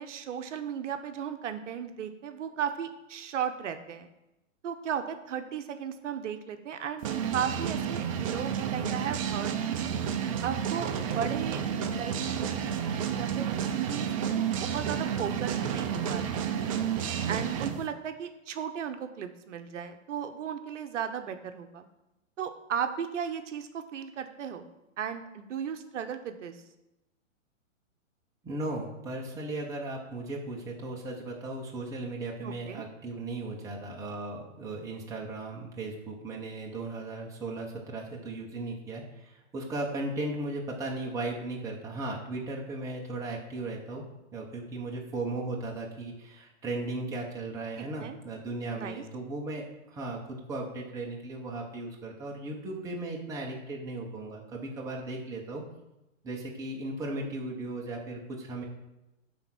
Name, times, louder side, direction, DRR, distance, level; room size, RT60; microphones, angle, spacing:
voice 1, 0.0-4.1 4.6-9.8 10.4-13.5 13.7-16.6 17.3-21.9 22.4-24.7 25.0-26.6 32.4-32.8 47.8-48.2 48.8-49.0, right 8 dB, 65° right, 8 dB, 0.9 m, -36 dB
sound 1, 7.0-17.8, right 8 dB, 25° right, 0.5 m, -31 dB
voice 2, 28.4-44.0 44.3-55.6 56.2-58.6, right 2 dB, 10° right, -2 dB, 0.9 m, -36 dB
9.6 x 3.6 x 6.1 m, 0.96 s
hypercardioid pair, 150°, 40 cm